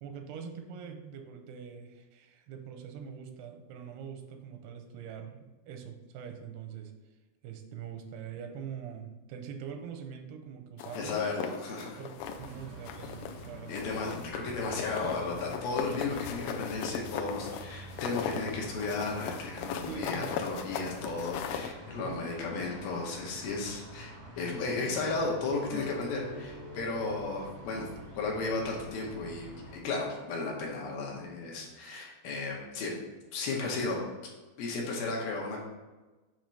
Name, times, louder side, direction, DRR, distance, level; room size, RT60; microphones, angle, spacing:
voice 1, 0.0-6.9 7.4-11.3 12.0-13.8 19.9-20.3 22.0-22.2, right 7 dB, 85° right, 5 dB, 2.7 m, -43 dB
sound 1, 10.8-12.5 12.9-13.5 13.7-21.7, left 8 dB, 90° left, 1.9 m, -38 dB
voice 2, 11.0-12.0 13.7-27.9 28.2-33.0 33.3-34.0 34.6-35.6, left 3 dB, 75° left, -1 dB, 2.7 m, -34 dB
sound 2, 12.2-29.8, equal, 40° right, 0.8 m, -47 dB
sound 3, 25.6-30.5, left 1 dB, 25° left, 0.8 m, -47 dB
7.2 x 3.0 x 5.2 m, 1.2 s
omnidirectional pair, 4.5 m